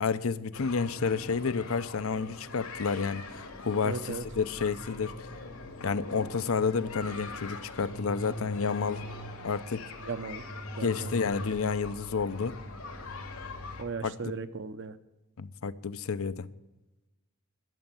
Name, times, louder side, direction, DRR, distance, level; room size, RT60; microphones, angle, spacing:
voice 1, 0.0-5.3 5.8-9.0 9.4-9.8 10.8-12.6 14.0-14.3 15.4-16.5, left 5 dB, 70° left, 0.6 m, -30 dB
sound 1, 0.5-13.8, left 2 dB, 90° left, 2.6 m, -42 dB
voice 2, 3.8-4.2 10.0-10.4 10.8-11.2 13.8-15.0, right 4 dB, 55° right, 0.7 m, -36 dB
12.5 x 7.0 x 9.1 m
head